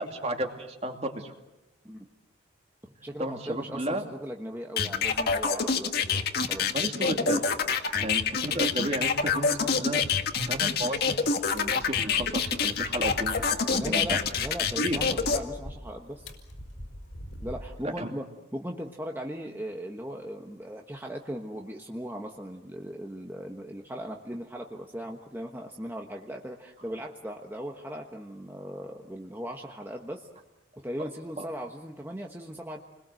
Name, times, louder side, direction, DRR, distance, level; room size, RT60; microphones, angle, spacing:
voice 1, 0.0-1.3 3.2-4.0 6.7-7.4 8.0-10.1 10.5-11.2 11.5-14.2 14.8-15.0 17.8-18.1 31.0-31.1 31.4-31.5, right 1 dB, 35° right, 4 dB, 2.6 m, -33 dB
voice 2, 2.8-6.7 7.9-8.1 13.8-16.3 17.4-18.2 18.5-30.3 30.8-32.8, equal, 10° right, 1 dB, 1.3 m, -38 dB
sound 1, 4.8-15.4, left 5 dB, 55° left, 1.7 m, -26 dB
sound 2, 9.9-17.8, equal, 80° left, 4.7 m, -44 dB
29.5 x 21.5 x 7.8 m, 1.0 s
head